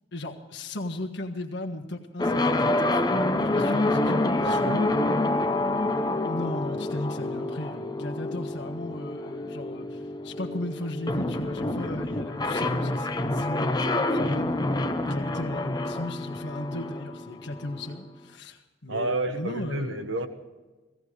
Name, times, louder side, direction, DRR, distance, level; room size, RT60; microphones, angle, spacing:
voice 1, 0.1-3.0 3.5-4.6 6.2-14.6 15.0-20.0, left 1 dB, 55° left, 2 dB, 1.4 m, -36 dB
sound 1, 2.2-18.0, left 2 dB, 20° left, 0.7 m, -27 dB
voice 2, 4.5-5.0 18.9-20.3, right 2 dB, 65° right, 8 dB, 1.3 m, -30 dB
17.0 x 16.5 x 4.9 m, 1.2 s
head